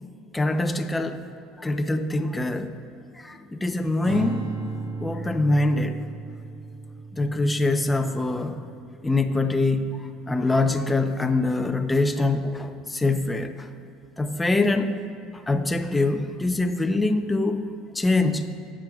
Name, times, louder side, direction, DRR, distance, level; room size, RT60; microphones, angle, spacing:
voice 1, 0.3-1.2 1.6-2.7 3.2-4.5 5.0-6.0 7.1-8.6 9.0-13.7 14.2-15.0 15.3-17.7 17.9-18.5, left 2 dB, 15° left, 7 dB, 0.7 m, -24 dB
Strum, 4.0-10.4, right 3 dB, 60° right, 1.4 m, -37 dB
17.0 x 7.4 x 2.4 m, 2.6 s
supercardioid pair, 95°, 0 cm